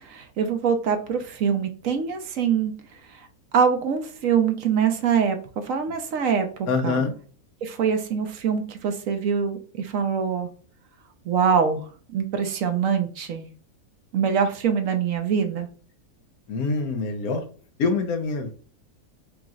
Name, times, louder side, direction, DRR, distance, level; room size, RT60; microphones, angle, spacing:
voice 1, 0.0-2.7 3.1-3.2 3.5-7.0 7.6-10.5 11.3-13.5 14.1-15.7, right 7 dB, 65° right, 6 dB, 1.0 m, -24 dB
voice 2, 6.7-7.1 16.5-17.4 17.8-18.5, left 4 dB, 80° left, 6 dB, 1.3 m, -25 dB
5.1 x 2.9 x 2.4 m, 0.41 s
omnidirectional pair, 1.6 m